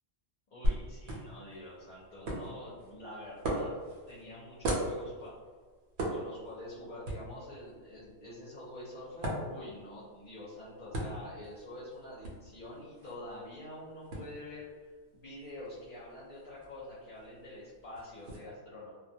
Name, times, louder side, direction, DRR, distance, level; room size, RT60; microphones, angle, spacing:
voice 1, 0.5-3.7 4.1-5.3 6.1-14.7 15.1-18.9, left 1 dB, 55° left, -7 dB, 0.7 m, -46 dB
sound 1, 0.6-18.4, right 1 dB, 80° right, 0.9 m, -40 dB
2.2 x 2.1 x 2.6 m, 1.5 s
omnidirectional pair, 1.1 m